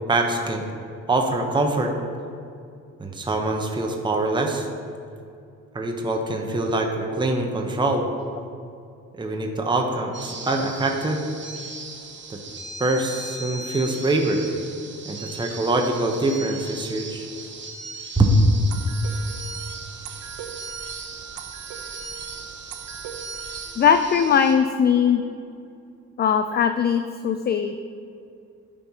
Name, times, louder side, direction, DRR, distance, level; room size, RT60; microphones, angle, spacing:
voice 1, 0.1-0.7 1.1-1.9 3.0-4.7 5.7-8.1 9.2-11.2 12.3-12.4 12.8-14.4 15.0-17.3 18.2-18.4, right 2 dB, 15° right, 2 dB, 0.8 m, -24 dB
sound 1, 10.1-24.5, right 3 dB, 40° right, 1.1 m, -38 dB
sound 2, 18.7-24.0, right 8 dB, 80° right, 0.7 m, -39 dB
voice 2, 23.8-25.2 26.2-27.7, left 7 dB, 35° left, 9 dB, 0.4 m, -20 dB
8.7 x 4.5 x 5.5 m, 2.5 s
cardioid pair, 90°, 30 cm